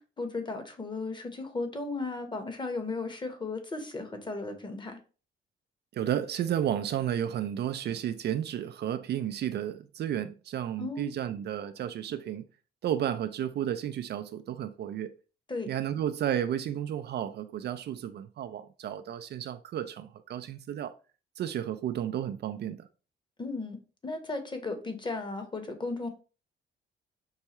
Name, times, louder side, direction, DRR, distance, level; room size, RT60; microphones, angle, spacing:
voice 1, 0.0-5.0 10.8-11.1 15.5-15.7 23.4-26.1, left 3 dB, 25° left, 1.0 m, -35 dB
voice 2, 5.9-12.4 12.8-15.1 15.7-20.9 21.4-22.9, right 10 dB, 55° right, 0.4 m, -32 dB
5.5 x 2.3 x 2.9 m
cardioid pair, 90°, 20 cm